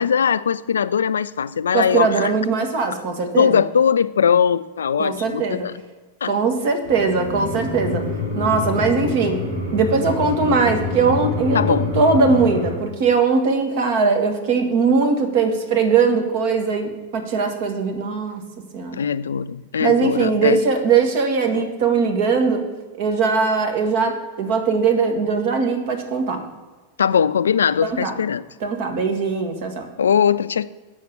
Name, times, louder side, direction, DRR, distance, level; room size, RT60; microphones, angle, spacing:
voice 1, 0.0-2.3 3.4-5.7 6.2-6.3 11.5-11.9 18.9-20.6 21.5-21.6 27.0-28.4 30.0-30.6, left 7 dB, 70° left, 15 dB, 0.4 m, -20 dB
voice 2, 1.7-3.6 5.0-5.7 6.2-8.0 8.3-9.4 9.7-18.4 18.7-19.0 19.8-22.6 23.0-26.4 27.8-28.2 28.6-29.9, right 4 dB, 50° right, 5 dB, 1.8 m, -20 dB
sound 1, 6.8-12.7, left 3 dB, 70° right, 3.3 m, -27 dB
7.3 x 6.5 x 7.4 m, 1.3 s
figure-of-eight pair, 90°, 0 cm